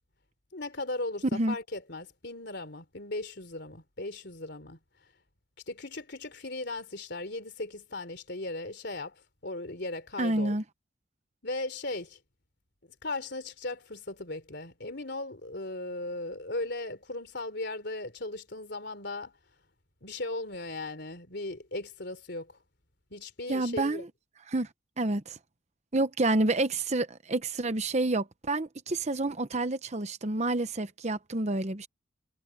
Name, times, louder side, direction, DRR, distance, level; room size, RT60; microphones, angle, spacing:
voice 1, 0.5-4.8 5.7-10.6 11.4-12.2 12.8-19.3 20.0-22.6 23.1-24.1, left 2 dB, 55° left, 3.7 m, -37 dB
voice 2, 10.2-10.6 23.5-24.1 24.5-24.7 25.0-25.4 25.9-31.9, right 2 dB, 35° right, 0.9 m, -29 dB
head